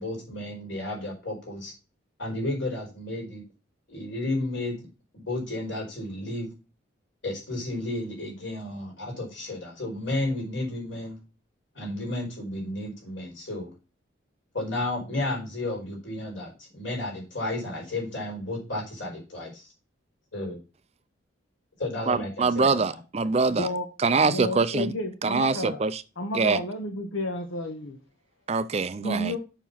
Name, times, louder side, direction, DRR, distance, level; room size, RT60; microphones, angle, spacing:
voice 1, 0.0-1.7 2.2-3.4 3.9-4.9 5.1-6.5 7.2-11.2 11.7-13.7 14.5-19.7 20.3-20.6 21.8-23.0, left 2 dB, 65° left, 4.7 m, -32 dB
voice 2, 22.1-23.7 24.0-24.9 25.2-26.0 26.3-26.6 28.5-29.3, right 4 dB, 30° right, 0.4 m, -24 dB
voice 3, 24.2-25.8 26.2-28.0 29.0-29.4, left 1 dB, 90° left, 1.3 m, -31 dB
7.1 x 6.0 x 5.6 m
head